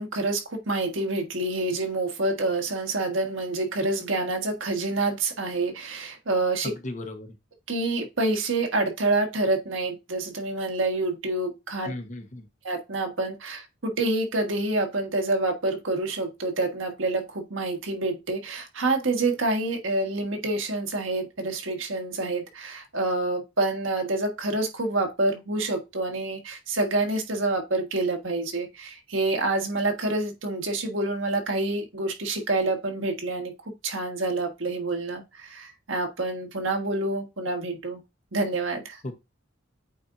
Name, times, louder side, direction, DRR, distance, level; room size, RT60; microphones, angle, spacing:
voice 1, 0.0-6.7 7.7-11.9 12.6-33.5 33.8-38.0 38.3-39.0, right 2 dB, 80° right, 1.6 m, -27 dB
voice 2, 6.6-7.3 11.8-12.5 39.0-39.3, left 1 dB, 40° left, 1.1 m, -36 dB
8.5 x 4.3 x 2.6 m
head